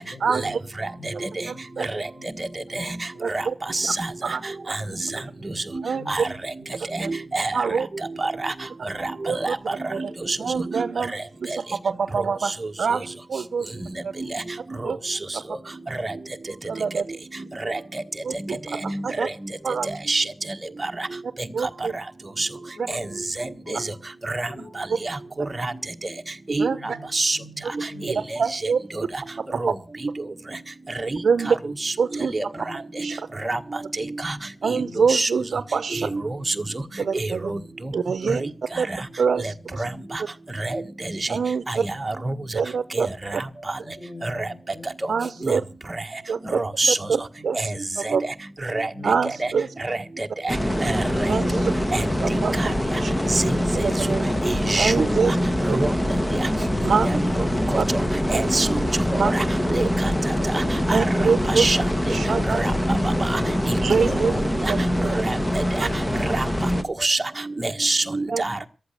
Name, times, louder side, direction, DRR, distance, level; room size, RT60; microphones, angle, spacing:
voice 1, 0.0-0.5 0.8-2.3 2.7-2.9 3.4-3.8 5.1-6.3 7.2-7.4 13.0-13.1 13.7-14.1 16.4-16.5 18.9-19.2 21.7-22.0 22.3-24.8 25.2-25.7 26.7-28.3 31.3-31.7 32.5-32.8 33.2-33.3 34.7-35.1 36.2-36.6 37.7-37.8 38.2-38.6 39.6-39.8 40.2-40.3 42.2-42.3 43.8-47.1 47.4-47.5 48.8-49.7, left 1 dB, 70° left, 2 dB, 7.4 m, -46 dB
voice 2, 1.5-1.9 3.2-3.5 3.8-3.9 4.2-4.4 5.8-6.0 7.0-7.1 7.5-7.9 9.3-9.5 9.9-10.1 10.4-11.1 11.4-12.5 12.8-13.7 14.0-14.1 14.8-15.0 15.3-15.4 16.7-17.0 18.2-18.6 19.0-19.3 19.6-19.9 21.5-21.9 26.6-27.0 27.6-27.7 28.4-28.8 29.5-29.6 31.2-31.6 32.0-32.3 33.0-33.3 34.6-36.1 37.0-37.5 37.9-38.4 38.8-38.9 39.2-39.8 41.3-41.8 42.5-43.4 45.1-45.6 46.3-46.6 47.1-47.7 48.0-48.2 49.0-49.7 51.3-51.5 52.2-52.6 53.0-53.1 53.7-54.3 54.8-55.4 55.7-55.8 56.8-57.1 57.7-57.8 58.3-58.5 59.1-59.3 60.9-61.6 62.1-62.6 63.8-64.3 64.6-65.1 65.8-65.9 68.3-68.4, right 6 dB, 70° right, 13 dB, 0.7 m, -25 dB
voice 3, 7.1-7.5 8.2-8.5 9.0-9.5 10.3-10.4 14.8-15.2 17.7-17.8 18.8-19.3 20.1-20.2 22.4-22.5 23.4-23.5 24.3-24.5 25.6-25.7 26.5-26.7 27.1-27.4 29.0-29.1 29.6-29.7 31.0-31.1 31.8-31.9 32.3-32.4 33.4-33.6 34.2-34.3 34.7-34.8 35.1-35.3 37.5-37.6 38.3-38.4 39.8-39.9 40.6-40.8 42.1-42.3 43.0-43.1 44.2-44.3 45.4-45.5 46.6-47.0 47.6-47.7 48.0-48.2 48.7-48.9 49.9-50.0 50.4-50.5 50.8-50.9 51.9-52.0 52.6-52.7 53.4-53.5 54.4-55.1 55.7-55.9 58.3-58.8 59.1-59.4 59.7-59.8 60.5-60.6 60.9-61.8 62.6-63.0 63.3-63.4 64.0-64.1 66.3-66.4 67.0-67.2 67.6-68.6, right 2 dB, 20° right, 5 dB, 1.5 m, -25 dB
sound 1, 50.5-66.8, equal, 10° left, 1.3 m, -24 dB
14.5 x 11.5 x 6.6 m, 0.34 s
wide cardioid pair, 135°, 0 cm